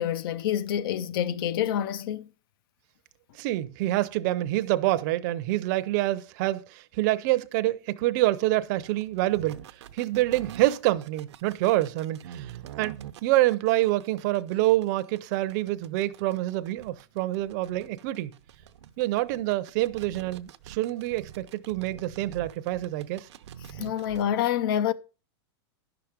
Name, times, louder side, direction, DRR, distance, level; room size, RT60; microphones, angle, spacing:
voice 1, 0.0-2.3 23.8-24.9, left 10 dB, 55° left, 0.7 m, -27 dB
voice 2, 3.3-9.6 9.9-18.3 19.0-23.3, right 16 dB, 40° right, 0.6 m, -26 dB
sound 1, 8.8-24.3, right 10 dB, 85° right, 0.7 m, -46 dB
11.0 x 6.0 x 5.0 m
supercardioid pair, 160°, 14 cm